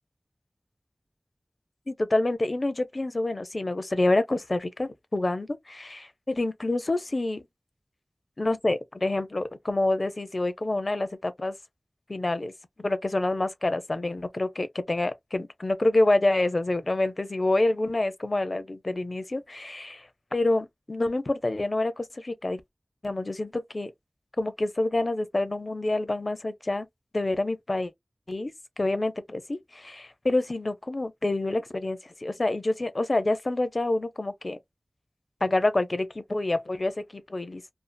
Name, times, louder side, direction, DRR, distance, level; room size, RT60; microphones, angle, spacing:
voice 1, 1.9-7.4 8.4-11.6 12.1-12.5 12.8-22.6 23.0-23.9 24.4-26.9 27.1-27.9 28.3-28.5 28.8-34.6 35.4-37.6, left 2 dB, 55° left, 0.5 m, -27 dB
2.6 x 2.4 x 2.2 m
wide cardioid pair, 45°, 0 cm